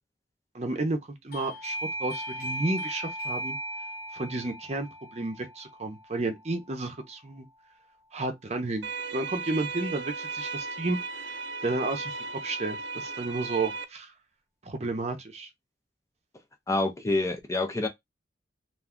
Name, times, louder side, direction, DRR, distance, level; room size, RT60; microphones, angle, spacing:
voice 1, 0.5-3.6 4.1-7.5 8.1-11.3 11.6-12.1 12.4-14.1 14.6-15.5, right 2 dB, 40° right, 0.6 m, -32 dB
Doorbell, 1.3-7.8, right 1 dB, 55° left, 1.2 m, -38 dB
sound 1, 8.8-13.8, right 4 dB, 90° right, 0.5 m, -36 dB
voice 2, 16.7-17.9, left 2 dB, 15° left, 0.5 m, -27 dB
2.5 x 2.3 x 3.6 m
head